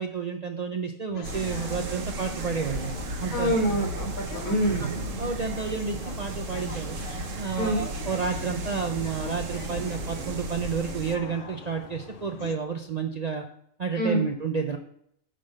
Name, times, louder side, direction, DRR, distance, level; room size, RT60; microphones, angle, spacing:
voice 1, 0.0-3.6 5.2-7.0 7.4-13.5 13.8-14.8, right 5 dB, 50° right, 4 dB, 0.5 m, -31 dB
sound 1, 1.1-12.6, left 5 dB, 45° left, 0.8 m, -42 dB
sound 2, 1.2-11.2, right 2 dB, 70° right, 1.3 m, -35 dB
voice 2, 3.3-5.0 7.6-7.8 14.0-14.2, right 1 dB, 75° left, 0 dB, 2.4 m, -26 dB
9.2 x 3.8 x 6.4 m, 0.68 s
omnidirectional pair, 1.4 m